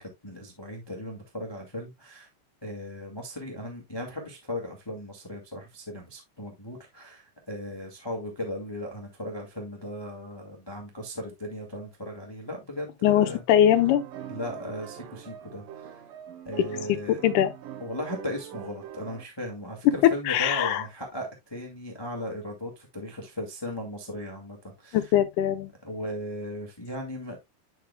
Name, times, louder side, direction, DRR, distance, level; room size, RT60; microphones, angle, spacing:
voice 1, 0.0-2.3 2.6-13.4 14.3-16.0 16.4-17.2 17.8-25.1 25.8-27.4, left 1 dB, 15° left, 0.9 m, -37 dB
voice 2, 13.0-14.1 16.9-17.0 17.2-17.5 20.3-20.8 24.9-25.7, left 11 dB, 75° left, 2.1 m, -22 dB
sound 1, 13.7-19.3, right 10 dB, 90° right, 2.8 m, -43 dB
10.5 x 5.6 x 2.2 m
omnidirectional pair, 3.8 m